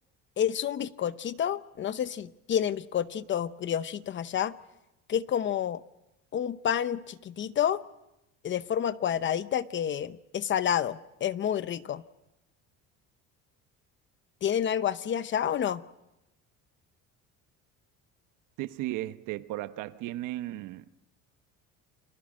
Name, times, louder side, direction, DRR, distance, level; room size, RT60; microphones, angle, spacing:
voice 1, 0.4-4.5 5.1-5.8 6.3-7.8 8.4-12.0 14.4-15.8, left 9 dB, 35° left, 0.8 m, -29 dB
voice 2, 18.6-21.0, right 15 dB, 70° right, 1.2 m, -35 dB
29.5 x 22.5 x 6.3 m
cardioid pair, 140°, 32 cm